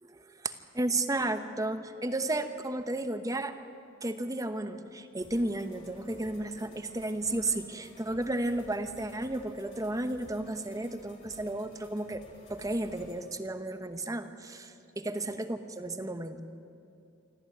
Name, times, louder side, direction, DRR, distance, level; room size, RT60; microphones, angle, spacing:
voice 1, 0.0-3.6 4.0-12.2 12.5-16.4, right 2 dB, 20° right, 9 dB, 1.0 m, -33 dB
sound 1, 5.2-13.2, left 1 dB, 35° left, 4.0 m, -54 dB
25.5 x 14.0 x 9.5 m, 2.7 s
head